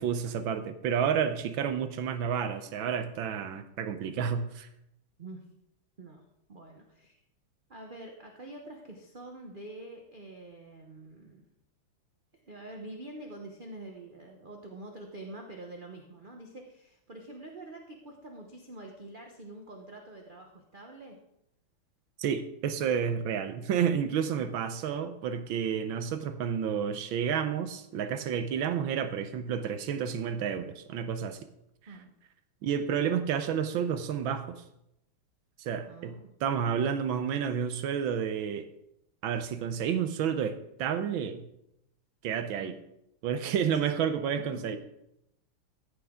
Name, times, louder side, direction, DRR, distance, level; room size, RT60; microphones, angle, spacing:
voice 1, 0.0-4.7 22.2-31.4 32.6-34.6 35.6-38.7 39.2-41.4 42.2-42.7 43.2-44.8, right 7 dB, 75° right, 10 dB, 1.5 m, -30 dB
voice 2, 6.5-7.2 7.7-11.4 12.3-21.2 31.9-32.1 35.9-36.3 42.6-42.8 43.7-43.9 44.5-44.8, right 2 dB, 45° right, 2 dB, 0.6 m, -46 dB
14.5 x 7.0 x 3.6 m, 0.80 s
omnidirectional pair, 2.3 m